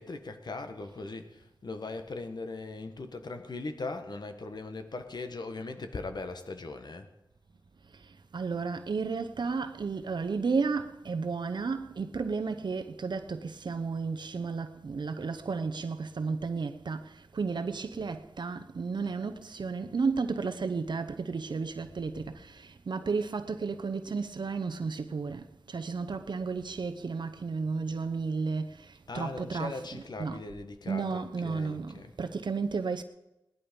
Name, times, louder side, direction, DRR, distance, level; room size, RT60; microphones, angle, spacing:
voice 1, 0.0-7.1 29.1-32.4, left 3 dB, 60° left, 1.4 m, -39 dB
voice 2, 7.8-30.5 30.9-33.0, right 4 dB, 65° right, 0.8 m, -33 dB
18.5 x 11.0 x 5.2 m
wide cardioid pair, 80°, 8 cm